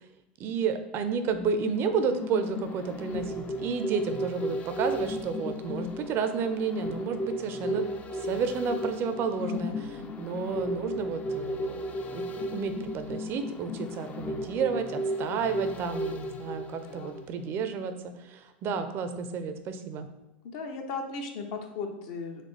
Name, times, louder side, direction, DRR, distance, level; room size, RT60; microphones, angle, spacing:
voice 1, 0.4-9.7 10.2-20.1, right 6 dB, 45° right, 9 dB, 0.4 m, -31 dB
sound 1, 1.3-17.5 17.9-18.0, equal, 25° left, 0.4 m, -35 dB
voice 2, 9.4-10.2 16.7-17.3 20.4-22.4, left 4 dB, 60° left, 4 dB, 0.7 m, -38 dB
4.1 x 3.2 x 3.3 m, 0.98 s
hypercardioid pair, 95°, 6 cm